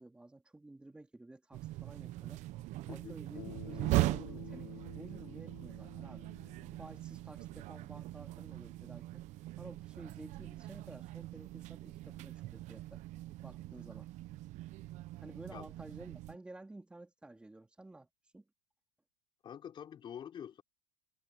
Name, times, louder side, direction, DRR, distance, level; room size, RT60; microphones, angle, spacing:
voice 1, 0.0-2.5 2.9-6.3 6.8-9.2 9.6-13.0 13.4-14.1 15.2-18.1 18.3-18.4, right 2 dB, 5° right, 3.2 m, -52 dB
sound 1, 1.5-16.4, right 17 dB, 40° right, 0.9 m, -40 dB
voice 2, 2.9-3.2 15.5-15.7 19.4-20.6, left 9 dB, 25° left, 4.3 m, -46 dB
Bass guitar, 3.4-7.7, left 21 dB, 80° left, 3.6 m, -52 dB
supercardioid pair, 165°, 19 cm